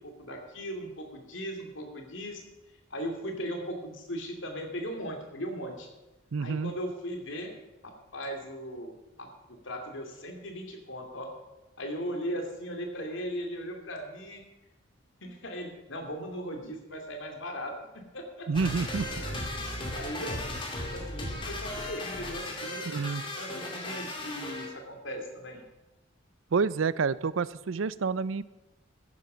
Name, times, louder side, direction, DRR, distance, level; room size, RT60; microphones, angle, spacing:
voice 1, 0.0-2.4 2.9-5.9 6.4-7.5 7.8-11.3 11.8-14.4 15.2-18.5 19.4-19.5 19.9-23.0 23.4-25.6, equal, 70° left, 3 dB, 2.6 m, -38 dB
voice 2, 6.3-6.7 18.5-19.1 22.9-23.2 26.5-28.4, right 5 dB, 75° right, 18 dB, 0.5 m, -28 dB
sound 1, 18.5-24.7, left 1 dB, 25° left, 2.3 m, -36 dB
13.5 x 11.0 x 5.1 m, 1.0 s
head